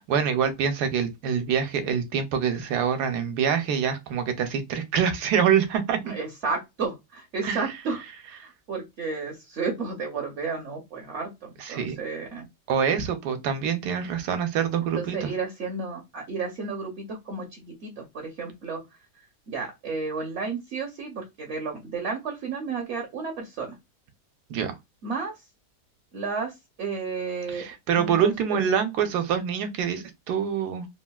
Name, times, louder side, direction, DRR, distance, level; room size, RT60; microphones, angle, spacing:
voice 1, 0.0-6.1 7.4-7.6 11.6-12.0 12.7-15.3 24.5-24.8 27.5-30.9, right 7 dB, 75° right, 1.2 m, -25 dB
voice 2, 6.0-8.0 8.3-12.5 14.9-18.8 19.5-23.8 25.0-25.4 26.1-26.5 26.8-27.7 28.0-28.6, right 4 dB, 55° right, 0.9 m, -32 dB
3.4 x 2.4 x 2.3 m
omnidirectional pair, 1.8 m